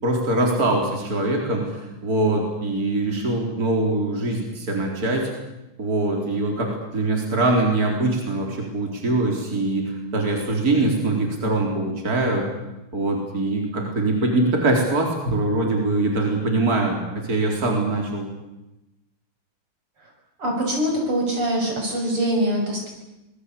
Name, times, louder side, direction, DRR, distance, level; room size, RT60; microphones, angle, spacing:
voice 1, 0.0-5.3 5.8-12.5 12.9-17.0 17.3-18.3, right 2 dB, 40° right, 1 dB, 4.5 m, -23 dB
voice 2, 20.4-22.9, right 1 dB, 80° right, 1 dB, 7.6 m, -23 dB
26.0 x 20.5 x 8.4 m, 0.96 s
omnidirectional pair, 2.4 m